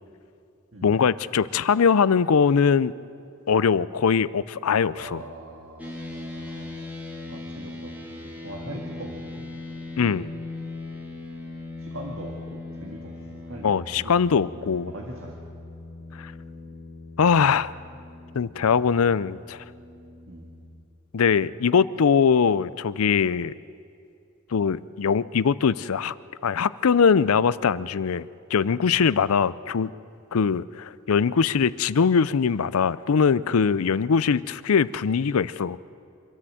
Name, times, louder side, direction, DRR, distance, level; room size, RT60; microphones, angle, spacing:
voice 1, 0.8-2.9 3.5-5.2 10.0-10.3 13.6-14.9 16.2-16.3 17.2-17.7 18.3-19.6 21.1-23.5 24.5-26.1 26.4-29.9 30.3-35.8, left 6 dB, 85° left, 18 dB, 0.5 m, -22 dB
voice 2, 4.9-6.7 7.3-9.4 11.8-14.1 14.6-15.4 20.3-20.5 29.1-29.3, right 1 dB, 65° right, 0 dB, 2.0 m, -41 dB
sound 1, 5.8-20.8, left 2 dB, 5° right, 2.5 m, -39 dB
25.0 x 13.5 x 7.8 m, 2.5 s
head